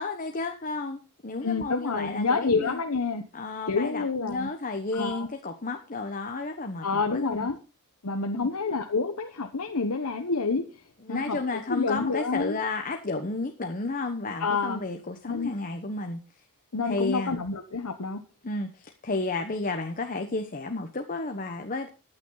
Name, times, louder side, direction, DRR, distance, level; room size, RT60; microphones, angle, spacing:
voice 1, 0.0-2.8 3.3-7.5 8.3-8.5 11.0-16.2 16.8-17.4 18.4-21.9, left 3 dB, 40° left, 5 dB, 1.2 m, -32 dB
voice 2, 1.4-3.2 3.7-4.5 4.9-5.3 6.8-7.6 8.0-10.6 11.1-11.4 11.7-12.6 14.4-14.8 15.2-15.5 16.7-18.2, left 4 dB, 75° left, 5 dB, 1.1 m, -28 dB
14.5 x 9.2 x 4.0 m, 0.35 s
head